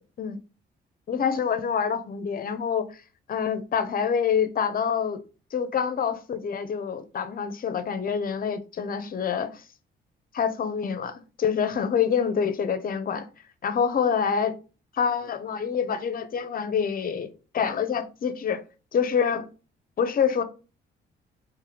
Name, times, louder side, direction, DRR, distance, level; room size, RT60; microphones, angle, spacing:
voice 1, 1.1-3.0 3.3-5.2 5.5-9.6 10.3-13.3 13.6-14.5 14.9-18.6 18.9-19.5 20.0-20.4, left 7 dB, 45° left, 0.6 m, -26 dB
3.5 x 3.0 x 3.3 m
cardioid pair, 90°, 20 cm